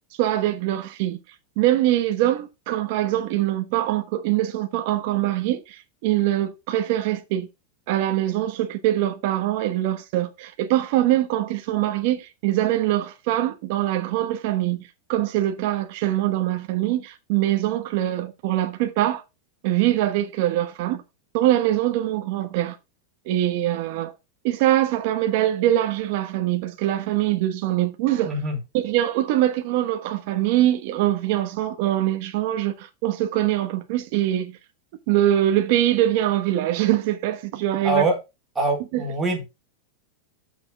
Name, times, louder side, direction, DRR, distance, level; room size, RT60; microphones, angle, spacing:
voice 1, 0.2-1.2 1.6-7.5 7.9-19.2 19.6-21.0 21.3-22.8 23.3-24.1 24.4-28.3 28.7-34.6 35.1-38.0 38.9-39.0, right 13 dB, 40° right, 1.1 m, -23 dB
voice 2, 28.2-28.6 37.8-38.2 38.6-39.4, right 2 dB, 10° right, 2.2 m, -23 dB
6.7 x 6.1 x 5.0 m
supercardioid pair, 180°, 0 cm